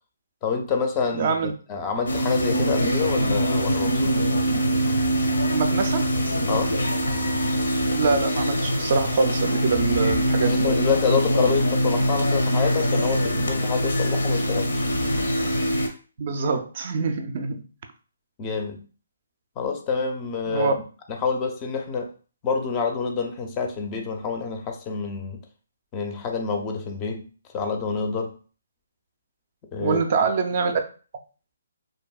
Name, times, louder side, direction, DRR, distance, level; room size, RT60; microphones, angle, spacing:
voice 1, 0.4-1.3 1.7-4.5 6.5-6.8 10.4-14.8 18.4-18.8 19.6-20.8 21.2-22.1 22.4-25.4 25.9-27.3 27.5-28.3 29.7-30.0, left 5 dB, 20° left, 4 dB, 0.4 m, -27 dB
voice 2, 1.1-1.5 5.5-6.1 7.9-10.7 16.2-17.6 20.5-20.7 29.8-30.8, right 4 dB, 45° right, 6 dB, 0.3 m, -24 dB
sound 1, 2.1-15.9, equal, 90° left, 0.6 m, -23 dB
2.6 x 2.5 x 2.2 m, 0.38 s
hypercardioid pair, 155°, 0 cm